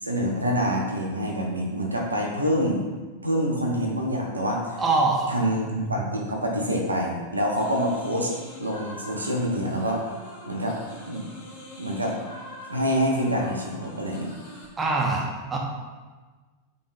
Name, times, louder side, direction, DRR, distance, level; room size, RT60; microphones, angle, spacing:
voice 1, 0.0-2.9 3.2-4.8 5.3-8.3 8.6-10.1 10.5-10.8 11.1-11.2 11.8-12.2 12.7-14.3, equal, 80° right, 0 dB, 0.7 m, -26 dB
voice 2, 4.8-5.3 14.8-15.6, right 3 dB, 15° right, -1 dB, 0.8 m, -23 dB
sound 1, 7.5-14.7, left 1 dB, 60° left, 1.2 m, -44 dB
5.1 x 3.5 x 2.6 m, 1.3 s
figure-of-eight pair, 90°, 0 cm